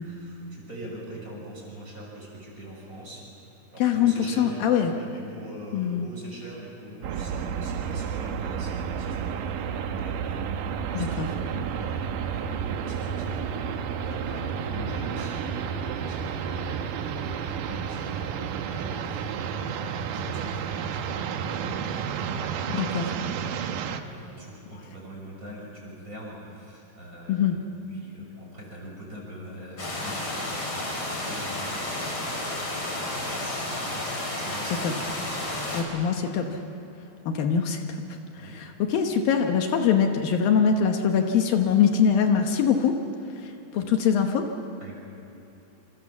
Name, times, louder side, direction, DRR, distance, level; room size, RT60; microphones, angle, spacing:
voice 1, 0.0-16.8 17.1-23.6 23.9-27.6 27.9-32.6 32.9-34.0 34.4-35.0 38.3-38.6 44.8-45.0, right 1 dB, 20° right, -2 dB, 6.6 m, -43 dB
voice 2, 3.8-4.9 5.7-6.1 10.9-11.3 22.7-23.1 27.3-27.6 34.7-34.9 35.7-36.6 37.3-38.0 38.4-43.0 43.4-44.5, left 7 dB, 75° left, 4 dB, 3.0 m, -23 dB
sound 1, 7.0-24.0, right 7 dB, 70° right, 2.5 m, -31 dB
sound 2, 29.8-35.8, left 1 dB, 35° left, 4.8 m, -31 dB
27.0 x 26.0 x 7.3 m, 2.9 s
omnidirectional pair, 4.3 m